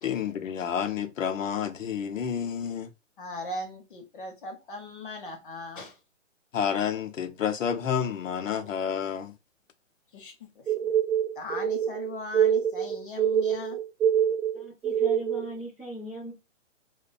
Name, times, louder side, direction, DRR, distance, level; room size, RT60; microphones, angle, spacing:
voice 1, 0.0-2.9 6.5-9.3, left 8 dB, 85° left, 0.6 m, -29 dB
voice 2, 3.2-6.0 10.1-10.9 11.4-13.8, left 2 dB, 45° left, 0.6 m, -39 dB
sound 1, 10.7-15.5, right 9 dB, 85° right, 0.5 m, -25 dB
voice 3, 14.5-16.3, right 1 dB, ahead, 0.4 m, -39 dB
2.3 x 2.2 x 2.4 m
hypercardioid pair, 150°, 38 cm